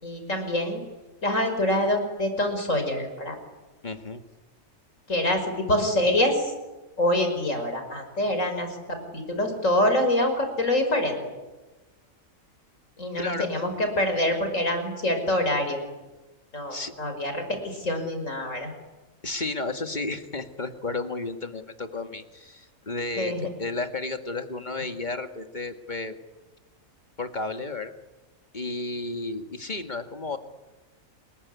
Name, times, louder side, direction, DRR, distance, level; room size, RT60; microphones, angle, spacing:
voice 1, 0.0-0.8 1.2-3.4 5.1-6.5 7.0-11.2 13.0-15.8 16.5-18.7 23.2-23.5, left 1 dB, 70° left, 6 dB, 5.9 m, -25 dB
voice 2, 3.8-4.2 13.2-13.5 16.7-16.9 19.2-26.2 27.2-27.9 28.5-30.4, left 3 dB, 35° left, 7 dB, 2.1 m, -32 dB
28.5 x 21.5 x 9.7 m, 1.1 s
omnidirectional pair, 1.4 m